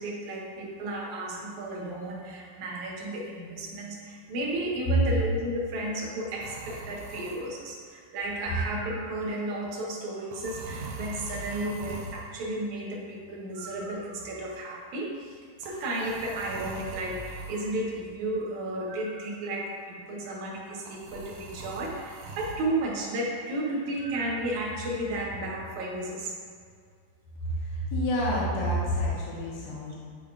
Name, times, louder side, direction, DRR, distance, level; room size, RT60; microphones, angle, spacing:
voice 1, 0.0-26.3, right 1 dB, 70° right, -2 dB, 2.1 m, -33 dB
sound 1, 6.4-7.6 8.3-9.2 10.3-12.3 13.5-14.5 15.6-17.7 18.9-19.6 20.9-22.7 24.0-24.5, right 2 dB, 90° right, 2.3 m, -42 dB
voice 2, 27.7-30.0, equal, 75° left, -6 dB, 2.7 m, -28 dB
9.9 x 5.0 x 2.4 m, 2.1 s
omnidirectional pair, 3.7 m